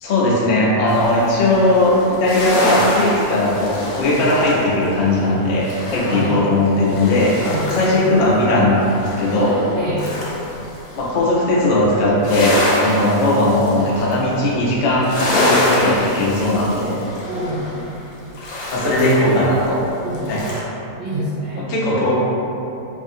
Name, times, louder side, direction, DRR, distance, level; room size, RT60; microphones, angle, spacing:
voice 1, 0.0-7.3 7.7-9.7 11.0-17.0 18.7-19.8 20.3-20.4 21.6-22.1, left 1 dB, 90° left, -5 dB, 0.5 m, -18 dB
sound 1, 0.9-8.1 8.4-11.2 11.6-20.6, left 1 dB, 70° left, 1.0 m, -26 dB
voice 2, 6.0-6.4 7.4-7.6 7.9-8.2 9.7-10.1 17.3-17.8 18.8-19.2 20.0-20.5 21.0-21.7, right 1 dB, 75° right, -11 dB, 0.5 m, -27 dB
2.6 x 2.5 x 2.6 m, 2.8 s
omnidirectional pair, 1.6 m